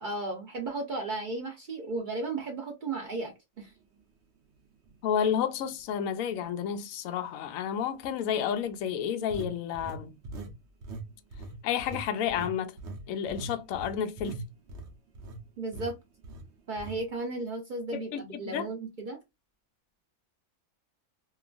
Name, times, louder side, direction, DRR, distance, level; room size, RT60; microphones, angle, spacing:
voice 1, 0.0-3.7 15.6-16.0 16.7-19.2, right 2 dB, 80° right, 0.4 m, -35 dB
sound 1, 4.8-5.0 5.6-5.7 9.3-10.6 10.8-11.1 11.3-15.4 15.7-15.9 16.2-16.4 16.8-17.0, right 2 dB, 60° right, 0.8 m, -41 dB
voice 2, 5.0-10.2 11.6-12.8 13.1-14.4 17.9-18.2 18.5-18.7, left 8 dB, 70° left, 0.9 m, -31 dB
2.9 x 2.3 x 2.3 m
omnidirectional pair, 1.6 m